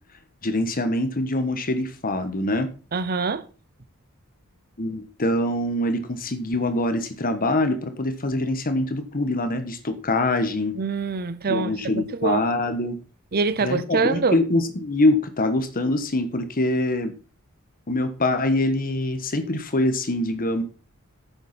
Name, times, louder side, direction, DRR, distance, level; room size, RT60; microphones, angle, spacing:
voice 1, 0.4-2.7 4.8-10.8 11.5-13.0 13.6-17.1 17.9-20.6, left 2 dB, 40° left, 1.3 m, -24 dB
voice 2, 2.9-3.5 10.7-12.4 13.3-14.4, right 4 dB, 45° right, 0.7 m, -25 dB
10.0 x 8.0 x 4.3 m
head